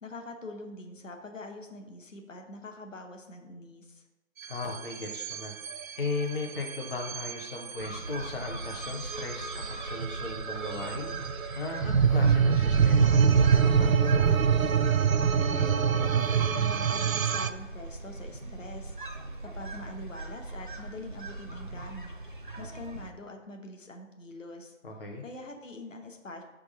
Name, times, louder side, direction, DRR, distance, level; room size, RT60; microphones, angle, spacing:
voice 1, 0.0-4.0 15.5-19.0 19.4-24.8 25.2-26.4, left 2 dB, 70° left, 3 dB, 1.1 m, -44 dB
sound 1, 4.4-17.5, right 6 dB, 90° right, 0.5 m, -26 dB
voice 2, 4.5-14.4 24.8-25.2, left 3 dB, 45° left, 0 dB, 0.9 m, -37 dB
sound 2, 7.8-23.1, right 2 dB, 40° right, 0.5 m, -41 dB
5.9 x 3.5 x 5.3 m, 1.1 s
figure-of-eight pair, 160°, 40 cm